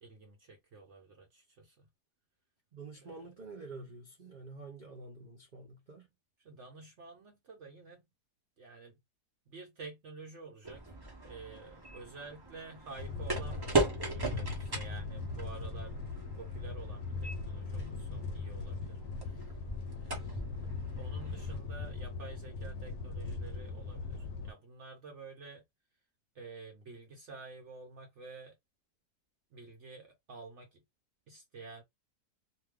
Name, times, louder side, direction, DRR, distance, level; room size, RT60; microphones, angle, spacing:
voice 1, 0.0-1.9 3.0-3.1 6.4-8.1 8.6-9.0 9.5-10.8 11.3-16.0 16.4-19.6 20.0-20.6 20.9-25.6 26.3-28.5 29.5-30.8 31.3-31.8, right 4 dB, 55° right, 0.9 m, -50 dB
voice 2, 2.7-6.1, right 3 dB, 90° right, 0.4 m, -48 dB
sound 1, 10.6-21.6, right 2 dB, 25° right, 0.5 m, -39 dB
sound 2, 13.0-24.5, left 3 dB, 75° left, 1.0 m, -40 dB
2.6 x 2.3 x 3.3 m
omnidirectional pair, 1.7 m